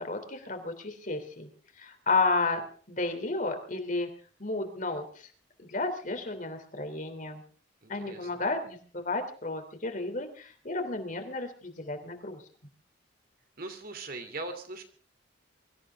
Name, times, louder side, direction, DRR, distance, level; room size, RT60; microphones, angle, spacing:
voice 1, 0.0-1.5 1.8-4.1 4.4-5.3 5.6-7.4 7.9-12.4, left 3 dB, 45° left, 6 dB, 3.2 m, -32 dB
voice 2, 7.8-8.4 13.6-14.8, right 2 dB, 50° right, 7 dB, 2.8 m, -40 dB
24.0 x 14.5 x 3.6 m, 0.43 s
head